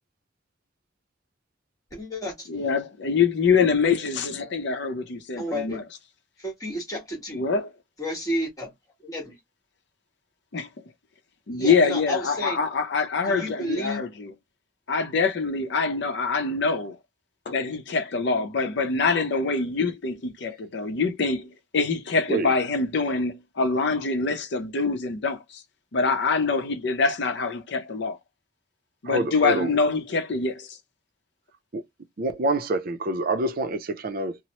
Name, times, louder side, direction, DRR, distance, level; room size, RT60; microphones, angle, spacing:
voice 1, 1.9-2.5 5.4-5.8 6.4-7.4 8.0-8.7 9.0-9.3 11.5-12.6 13.3-14.0, equal, 20° left, 1.4 m, -31 dB
voice 2, 2.5-5.8 7.3-7.7 10.5-10.7 11.5-14.3 14.9-17.0 17.5-25.6 25.9-28.2 29.0-30.8, left 4 dB, 65° left, 0.6 m, -25 dB
voice 3, 29.0-29.7 31.7-31.8 32.2-34.4, right 2 dB, 50° right, 0.5 m, -27 dB
2.9 x 2.0 x 2.9 m
head